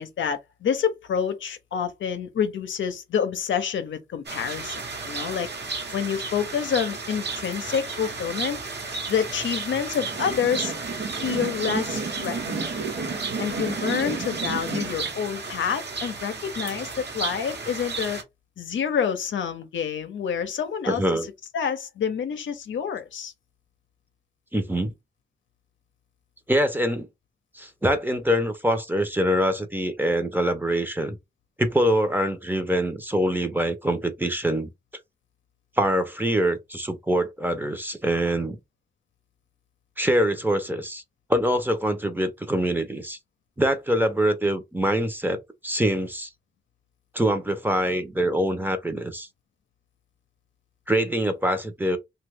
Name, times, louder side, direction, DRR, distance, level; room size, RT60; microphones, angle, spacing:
voice 1, 0.0-5.5 5.9-8.6 9.1-10.7 11.2-12.7 13.4-18.2 18.6-21.0 21.5-23.3, left 7 dB, 85° left, 0.6 m, -28 dB
sound 1, 4.3-18.2, right 4 dB, 65° right, 1.0 m, -33 dB
sound 2, 10.0-15.1, right 4 dB, 90° right, 0.9 m, -32 dB
voice 2, 20.9-21.3 24.5-24.9 26.5-27.1 27.5-31.2 31.6-34.7 35.8-38.6 40.0-41.0 41.3-43.2 43.6-46.3 47.1-49.3 50.9-52.0, equal, 10° right, 0.7 m, -24 dB
2.8 x 2.3 x 3.3 m
cardioid pair, 65°, 19 cm